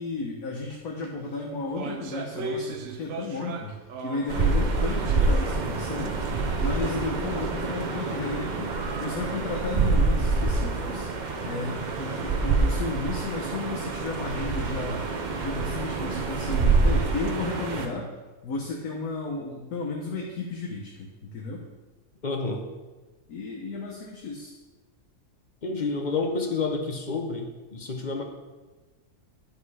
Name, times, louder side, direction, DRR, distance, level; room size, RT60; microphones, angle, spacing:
voice 1, 0.0-3.7 4.0-6.2 6.6-8.7 9.0-11.1 11.4-15.0 15.4-18.1 18.4-21.7 23.3-24.5, left 3 dB, 75° left, 0 dB, 1.4 m, -33 dB
sound 1, 0.6-0.8 1.0-4.4 4.8-5.7 6.0-6.1 6.8-6.9, right 4 dB, 65° right, 1.1 m, -37 dB
sound 2, 4.3-17.9, right 3 dB, 45° right, 0.6 m, -26 dB
voice 2, 22.2-22.6 25.6-28.2, left 3 dB, 40° left, 3 dB, 0.8 m, -29 dB
9.4 x 5.3 x 4.8 m, 1.2 s
omnidirectional pair, 1.6 m